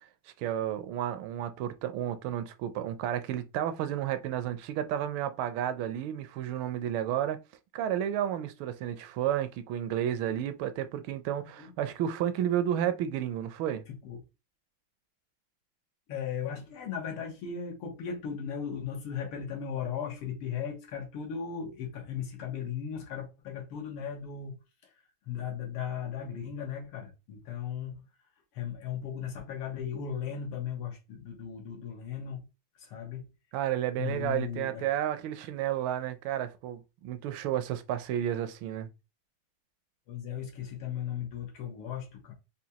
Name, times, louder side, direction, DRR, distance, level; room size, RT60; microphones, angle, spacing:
voice 1, 0.4-7.4 7.7-13.8 33.5-38.9, right 11 dB, 75° right, 1.3 m, -31 dB
voice 2, 13.9-14.2 16.1-28.0 28.5-32.5 32.8-33.3 34.0-34.8 40.1-42.3, left 8 dB, 85° left, 2.0 m, -37 dB
5.0 x 2.3 x 2.8 m
omnidirectional pair, 2.4 m